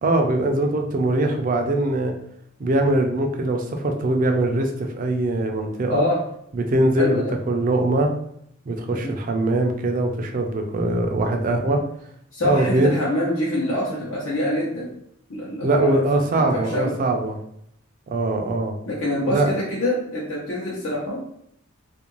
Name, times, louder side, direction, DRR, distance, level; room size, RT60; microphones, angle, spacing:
voice 1, 0.0-2.2 2.6-6.1 6.5-8.1 8.7-11.8 12.4-12.9 15.6-17.4 18.1-18.7 19.2-19.5, right 2 dB, 40° right, 4 dB, 0.4 m, -22 dB
voice 2, 5.9-6.2 7.0-7.3 8.9-9.1 11.6-11.8 12.3-14.9 15.3-16.0 16.3-16.9 18.9-21.3, left 1 dB, 80° left, -7 dB, 0.8 m, -25 dB
2.5 x 2.2 x 3.0 m, 0.71 s
head